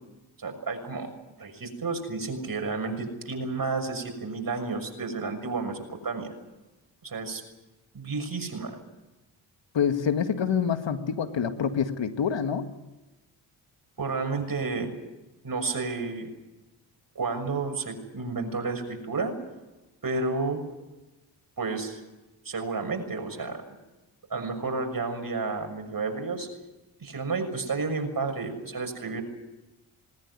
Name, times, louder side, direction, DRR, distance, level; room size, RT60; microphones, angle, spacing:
voice 1, 0.4-1.1 1.4-6.3 7.0-7.4 7.9-8.8 14.0-14.9 15.4-16.3 17.1-19.4 20.0-20.6 21.6-22.0 22.4-23.6 24.3-26.5 27.0-29.2, right 3 dB, 45° right, 5 dB, 6.5 m, -31 dB
voice 2, 9.7-12.7, left 7 dB, 60° left, 8 dB, 2.0 m, -26 dB
20.0 x 19.5 x 9.7 m, 1.1 s
supercardioid pair, 50°, 50 cm